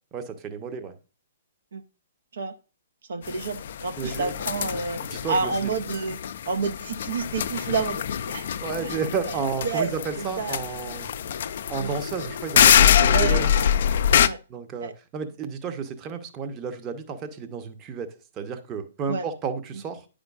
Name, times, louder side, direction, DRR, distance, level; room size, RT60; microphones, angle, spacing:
voice 1, 0.1-1.0 4.0-4.3 5.0-5.7 8.6-11.1 11.7-13.5 14.5-20.1, right 6 dB, 25° right, 0.8 m, -32 dB
voice 2, 3.1-5.0 5.3-6.2 6.5-8.0 8.3-8.5 8.8-9.0 9.6-9.9 10.2-10.6 11.8-11.9 13.0-13.7 14.2-14.4 14.8-14.9 19.1-19.2, right 4 dB, 65° right, 0.5 m, -29 dB
sound 1, 3.3-14.3, left 9 dB, 55° left, 0.3 m, -24 dB
9.5 x 5.1 x 2.3 m
figure-of-eight pair, 125°, 0 cm